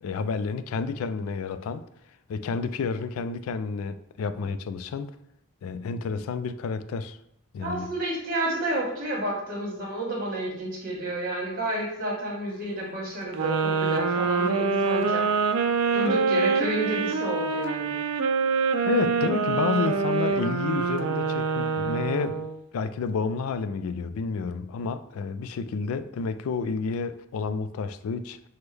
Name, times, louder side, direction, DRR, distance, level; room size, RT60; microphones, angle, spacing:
voice 1, 0.0-1.8 2.3-5.1 5.6-7.2 7.5-8.0 18.9-22.4 22.7-28.5, left 5 dB, 85° left, 0.3 m, -30 dB
voice 2, 7.6-15.3 15.9-18.0, right 1 dB, 40° right, 1.3 m, -30 dB
sound 1, 13.3-22.6, right 5 dB, 85° right, 0.4 m, -25 dB
6.0 x 2.1 x 3.3 m
head